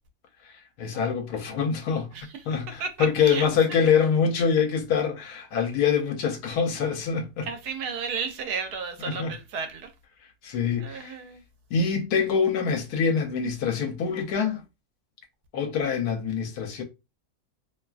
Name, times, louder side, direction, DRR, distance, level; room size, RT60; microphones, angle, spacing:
voice 1, 0.4-2.1 2.5-7.5 9.0-9.3 10.4-11.2 11.7-14.6 15.5-16.8, left 6 dB, 80° left, 1.1 m, -25 dB
voice 2, 2.8-3.5 7.4-9.9 10.8-11.4, right 5 dB, 80° right, 1.1 m, -33 dB
2.8 x 2.3 x 2.3 m
omnidirectional pair, 1.6 m